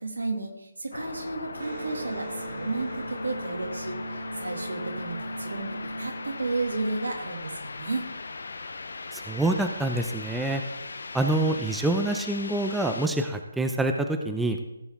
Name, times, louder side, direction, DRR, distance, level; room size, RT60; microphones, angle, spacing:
voice 1, 0.0-8.1, right 3 dB, 80° right, 2 dB, 2.3 m, -33 dB
sound 1, 0.9-13.1, left 3 dB, 70° left, 0.8 m, -39 dB
Electric guitar, 1.6-7.1, right 2 dB, 65° right, 3.4 m, -38 dB
voice 2, 9.1-10.6 11.1-14.6, right 2 dB, 5° right, 4 dB, 0.6 m, -26 dB
16.0 x 7.0 x 3.6 m, 0.96 s
figure-of-eight pair, 150°, 0 cm